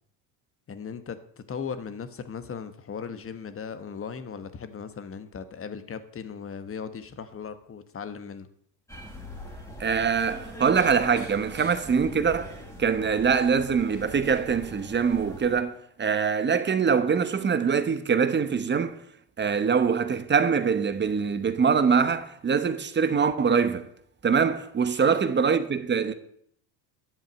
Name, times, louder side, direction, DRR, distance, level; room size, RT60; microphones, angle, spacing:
voice 1, 0.7-1.2 1.5-8.5 25.0-25.2, left 6 dB, 25° left, 1.2 m, -37 dB
sound 1, 8.9-15.6, equal, 5° left, 3.0 m, -42 dB
voice 2, 9.8-19.0 19.4-23.9 24.2-26.1, right 6 dB, 20° right, 1.0 m, -24 dB
11.0 x 7.3 x 6.2 m
hypercardioid pair, 80°, 50 cm